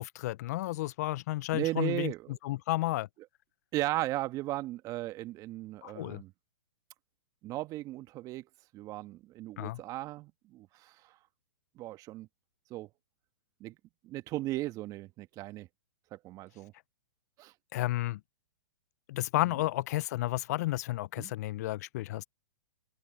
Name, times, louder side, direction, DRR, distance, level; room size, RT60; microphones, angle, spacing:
voice 1, 0.0-2.1 2.4-3.1 5.8-6.2 9.6-9.8 17.7-18.2 19.1-22.2, left 17 dB, 50° left, 0.8 m, -32 dB
voice 2, 1.5-2.4 3.7-6.3 7.4-8.4 8.7-11.0 11.8-12.3 12.7-12.9 13.6-13.8 14.0-15.7 16.1-16.7 17.4-17.5 19.4-19.5 21.2-21.3, right 17 dB, 30° right, 1.7 m, -36 dB
hypercardioid pair, 120°, 11 cm